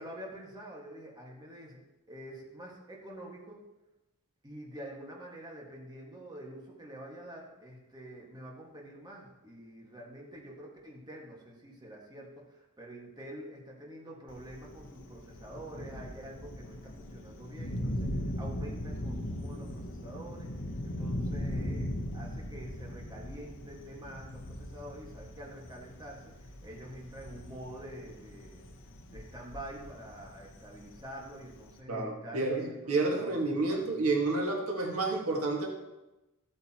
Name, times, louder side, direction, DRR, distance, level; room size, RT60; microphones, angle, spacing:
voice 1, 0.0-1.8 2.1-3.6 4.4-28.6 29.1-33.8, right 1 dB, 20° right, -2 dB, 1.7 m, -47 dB
Thunder, 14.3-31.8, equal, 60° left, 1.0 m, -39 dB
voice 2, 31.9-35.7, right 3 dB, 85° right, 0 dB, 1.8 m, -30 dB
13.5 x 8.5 x 3.0 m, 1.0 s
head